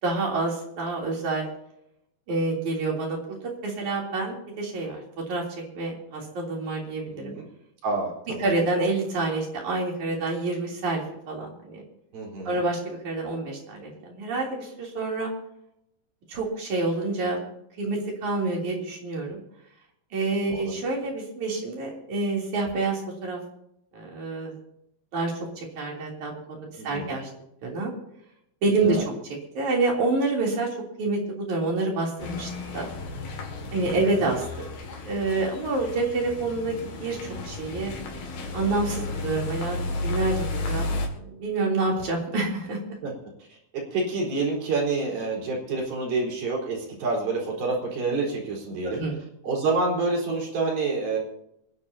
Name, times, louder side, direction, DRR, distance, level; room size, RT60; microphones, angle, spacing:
voice 1, 0.0-1.5 2.3-3.4 3.6-5.0 5.3-5.4 5.7-7.3 8.4-11.8 12.4-15.3 16.3-17.5 17.8-19.4 20.1-23.4 23.9-24.5 25.1-27.3 27.6-27.9 28.6-29.1 29.5-30.7 31.0-32.9 33.7-34.5 35.0-37.9 38.5-39.8 40.0-40.8 41.2-42.8 48.8-49.2, right 3 dB, 50° right, -1 dB, 4.6 m, -27 dB
voice 2, 7.8-8.5 12.1-12.6 20.5-20.7 26.8-27.2 28.8-29.0 33.8-34.0 43.0-43.1 43.7-49.0 49.4-51.2, right 3 dB, 70° right, -3 dB, 6.2 m, -28 dB
sound 1, 32.2-41.1, left 2 dB, 75° left, 3.9 m, -33 dB
26.5 x 11.0 x 2.9 m, 0.79 s
omnidirectional pair, 4.4 m